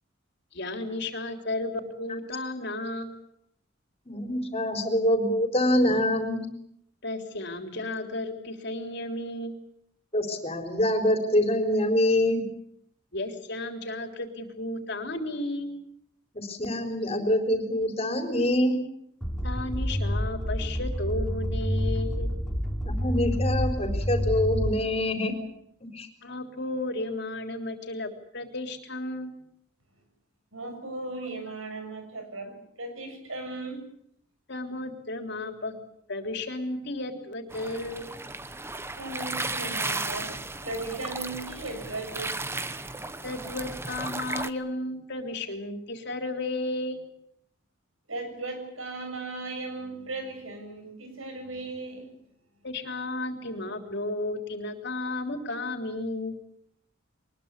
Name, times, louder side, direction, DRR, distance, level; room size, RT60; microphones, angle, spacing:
voice 1, 0.5-3.1 7.0-9.7 13.1-15.7 19.4-22.3 26.2-29.3 34.5-35.7 36.1-38.1 43.2-47.1 52.6-56.4, left 2 dB, 55° left, 5 dB, 3.6 m, -33 dB
voice 2, 4.1-6.4 10.1-12.5 16.3-18.8 22.9-25.3 25.9-26.1, left 1 dB, 30° left, 5 dB, 4.2 m, -25 dB
sound 1, 19.2-25.0, equal, 5° left, 3.4 m, -28 dB
voice 3, 30.5-33.8 39.0-40.3 40.6-42.4 48.1-52.1, right 2 dB, 90° right, 6 dB, 7.2 m, -37 dB
sound 2, 37.5-44.5, right 2 dB, 10° right, 1.0 m, -35 dB
23.5 x 21.0 x 8.4 m, 0.72 s
head